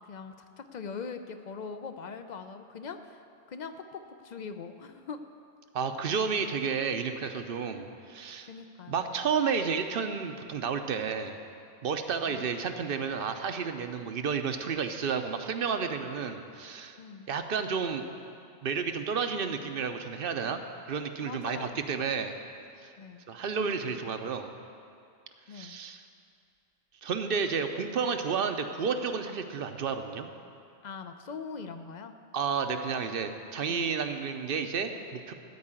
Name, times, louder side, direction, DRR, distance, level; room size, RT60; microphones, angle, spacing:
voice 1, 0.1-3.2 3.5-5.2 8.5-9.0 12.3-12.4 17.0-17.3 21.2-21.8 23.0-23.2 25.5-25.8 30.8-32.1 33.7-33.9, left 5 dB, 55° left, 9 dB, 0.5 m, -41 dB
voice 2, 5.7-8.5 8.9-11.4 11.8-17.0 17.3-18.0 18.6-22.3 22.8-22.9 23.3-24.5 25.5-26.0 27.0-30.3 32.3-35.3, right 6 dB, 55° right, 7 dB, 0.8 m, -31 dB
13.5 x 4.7 x 8.8 m, 2.5 s
omnidirectional pair, 1.2 m